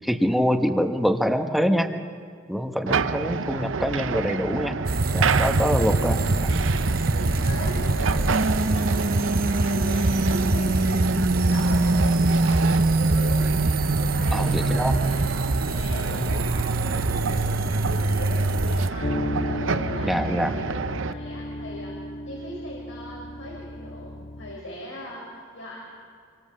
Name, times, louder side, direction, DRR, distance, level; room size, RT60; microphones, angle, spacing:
voice 1, 0.0-1.9 2.5-4.7 5.1-6.5 14.3-15.0 20.0-20.5, equal, ahead, 5 dB, 1.1 m, -25 dB
sound 1, 2.9-21.1, right 5 dB, 80° right, 0.6 m, -29 dB
sound 2, 4.9-18.9, right 2 dB, 50° right, 0.9 m, -23 dB
voice 2, 7.0-13.5 13.9-15.3 15.6-19.1 19.4-22.0 22.3-25.8, left 1 dB, 90° left, -3 dB, 5.8 m, -39 dB
sound 3, 19.0-24.6, left 1 dB, 40° left, 0.7 m, -33 dB
27.0 x 24.0 x 7.5 m, 2.2 s
head